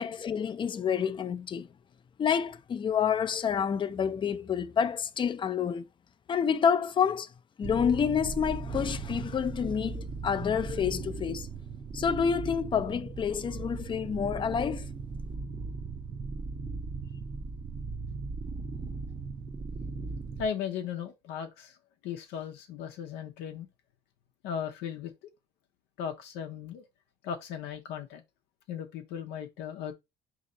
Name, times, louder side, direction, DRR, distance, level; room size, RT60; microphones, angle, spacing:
voice 1, 0.0-1.7 2.2-5.9 6.3-7.3 7.6-11.5 11.9-14.9, left 7 dB, 30° left, 0.4 m, -28 dB
sound 1, 7.6-20.5, right 4 dB, 25° right, 0.6 m, -38 dB
voice 2, 20.4-21.8 22.0-23.7 24.4-25.1 26.0-26.8 27.2-28.2 28.7-29.9, left 7 dB, 90° left, 0.6 m, -36 dB
4.2 x 2.8 x 3.8 m
cardioid pair, 110°, 17 cm